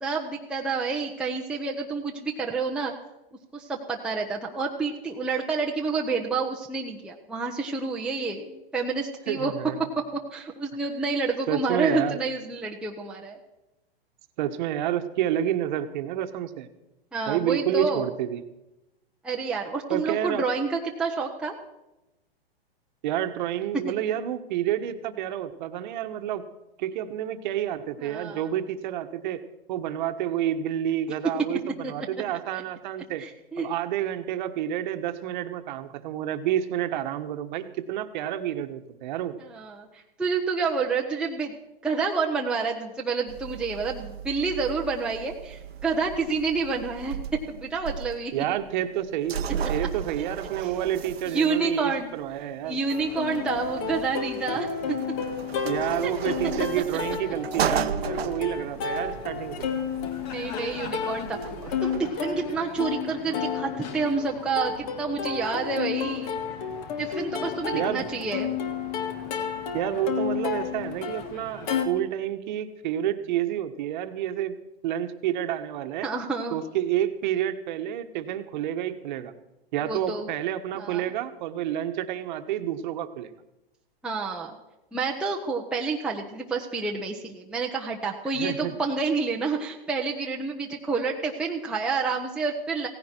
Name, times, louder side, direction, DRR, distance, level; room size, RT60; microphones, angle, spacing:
voice 1, 0.0-2.9 3.5-9.5 9.8-13.4 17.1-18.1 19.2-21.5 23.9-24.0 28.0-28.5 31.8-31.9 32.5-32.6 33.2-33.7 39.4-41.5 41.8-48.3 50.6-50.7 51.3-52.1 52.6-54.7 56.0-56.1 60.2-66.3 67.0-68.6 76.0-76.6 79.8-80.3 80.7-81.0 84.0-84.6 84.9-92.9, right 4 dB, 5° right, -2 dB, 1.0 m, -29 dB
voice 2, 9.3-9.9 11.5-12.2 14.4-16.7 17.3-18.4 19.9-20.4 23.0-26.4 26.8-29.4 29.7-33.2 33.6-39.4 48.3-49.4 49.7-52.8 55.6-59.7 67.7-68.0 69.7-74.6 74.8-76.1 76.5-79.3 79.7-83.3 88.3-88.8, right 11 dB, 50° right, 8 dB, 1.4 m, -29 dB
sound 1, 43.3-62.0, right 8 dB, 85° right, 1.0 m, -36 dB
Plucked string instrument, 52.9-71.9, left 6 dB, 40° left, 2.0 m, -32 dB
17.0 x 15.5 x 4.5 m, 0.95 s
hypercardioid pair, 135°, 30 cm